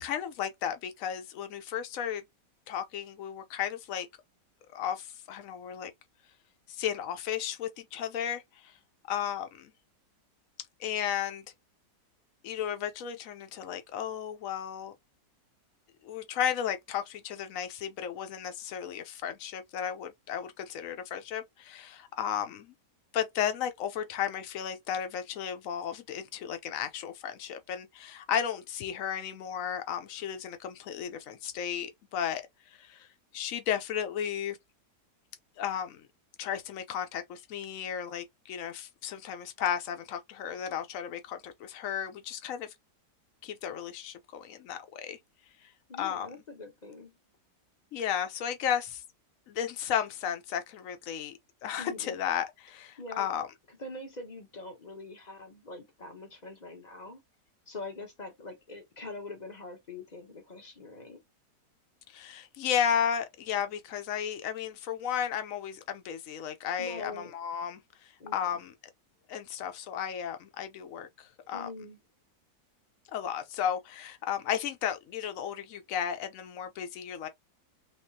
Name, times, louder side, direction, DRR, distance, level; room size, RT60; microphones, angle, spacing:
voice 1, 0.0-2.2 2.7-4.1 4.7-5.9 6.7-8.7 9.1-9.7 10.8-11.5 12.4-14.9 16.0-22.7 23.1-33.1 33.3-34.6 35.6-36.1 36.4-42.7 43.4-45.2 45.6-45.7 46.0-46.3 47.9-49.0 49.5-51.3 51.6-53.5 62.1-68.7 69.3-71.7 73.1-77.3, left 9 dB, 60° left, 1.0 m, -34 dB
voice 2, 45.9-47.2 51.8-52.2 53.0-53.3 53.7-57.2 57.7-61.2 66.8-67.3 68.2-68.3 71.5-72.0, left 2 dB, 35° left, 0.7 m, -43 dB
3.5 x 3.2 x 2.7 m
omnidirectional pair, 1.8 m